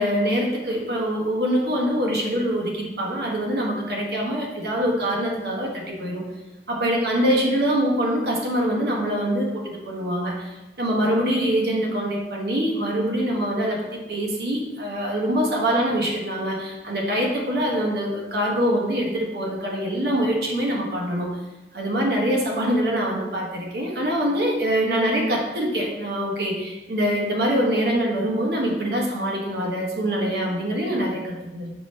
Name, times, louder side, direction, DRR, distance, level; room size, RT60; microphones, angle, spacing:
voice 1, 0.0-6.2 6.7-10.5 10.8-21.3 21.7-31.7, equal, 60° right, -1 dB, 0.9 m, -24 dB
4.8 x 2.7 x 3.2 m, 1.0 s
head